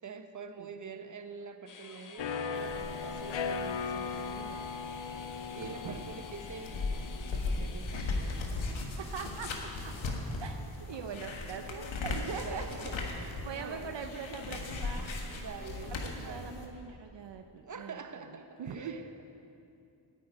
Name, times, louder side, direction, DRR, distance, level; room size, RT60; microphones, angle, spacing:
voice 1, 0.0-4.7 5.5-8.1 12.4-14.1 15.3-16.5 17.6-19.2, right 5 dB, 40° right, 7 dB, 1.1 m, -46 dB
sound 1, 1.7-8.5, left 5 dB, 45° left, 0.9 m, -52 dB
sound 2, 2.2-7.8, left 5 dB, 75° left, 0.8 m, -38 dB
sound 3, 2.5-16.7, left 3 dB, 90° left, 1.6 m, -38 dB
voice 2, 5.6-6.1 9.0-9.5 10.4-10.6 10.9-12.6 13.4-15.1 15.9-18.0 18.3-18.9, right 6 dB, 70° right, 6 dB, 0.8 m, -42 dB
9.3 x 9.0 x 9.8 m, 2.6 s
cardioid pair, 60°, 45 cm